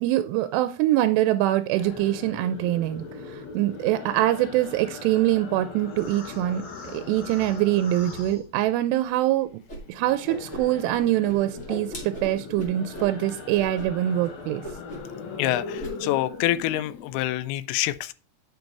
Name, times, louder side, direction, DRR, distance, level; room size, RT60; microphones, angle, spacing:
voice 1, 0.0-6.6 6.9-9.6 9.9-14.6, right 14 dB, 90° right, 2.7 m, -24 dB
sound 1, 1.7-9.1 9.4-17.4, left 4 dB, 55° left, 2.1 m, -40 dB
Whoosh swoosh swish, 9.7-9.8 10.1-11.0 11.2-13.1 13.5-13.9 14.1-14.3 14.6-15.1 15.4-15.9, equal, 20° left, 1.9 m, -38 dB
voice 2, 15.4-18.1, left 15 dB, 85° left, 2.4 m, -26 dB
9.3 x 5.2 x 4.6 m
omnidirectional pair, 4.7 m